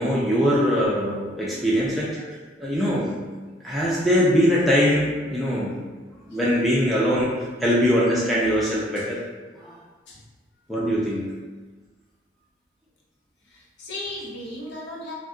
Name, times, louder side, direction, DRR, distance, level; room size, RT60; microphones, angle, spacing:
voice 1, 0.0-2.2 2.6-3.1 3.6-5.7 6.3-7.3 7.6-9.2 9.6-9.8 10.7-11.3, equal, ahead, -7 dB, 0.4 m, -22 dB
voice 2, 13.5-15.1, left 1 dB, 75° left, -3 dB, 0.7 m, -36 dB
2.6 x 2.2 x 3.7 m, 1.4 s
head